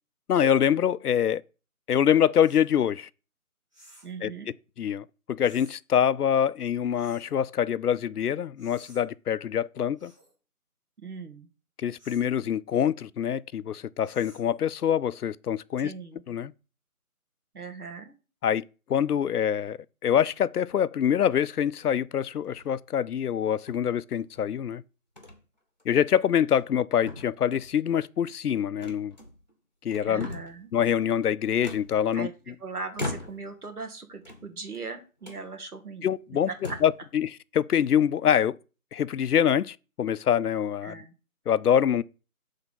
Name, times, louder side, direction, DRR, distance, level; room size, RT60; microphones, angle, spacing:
voice 1, 0.3-1.4 1.9-3.1 4.2-4.3 4.8-10.1 11.8-15.9 16.3-16.5 18.4-18.6 18.9-24.8 25.9-29.2 29.8-30.3 30.7-32.3 36.0-38.6 38.9-41.0 41.5-42.0, left 9 dB, 85° left, 0.5 m, -25 dB
sound 1, 2.4-2.7 3.7-4.2 5.4-5.8 6.9-7.3 8.6-9.0 10.0-10.3 12.0-12.3 14.0-14.6, right 1 dB, 20° right, 2.3 m, -54 dB
voice 2, 4.0-4.5 11.0-11.5 15.8-16.2 17.5-18.1 30.0-30.7 32.1-36.1 36.5-36.8 40.8-41.1, right 4 dB, 75° right, 1.6 m, -39 dB
sound 2, 22.4-22.9 23.7-24.4 25.2-25.4 25.8-25.9 26.4-26.8 27.1-27.8 28.8-29.5 29.9-30.7 31.6-32.5 32.9-33.6 34.2-34.8 35.2-35.4 36.1-36.2 36.5-37.0, left 2 dB, 30° left, 1.0 m, -40 dB
6.8 x 3.6 x 5.5 m
figure-of-eight pair, 175°, 45 cm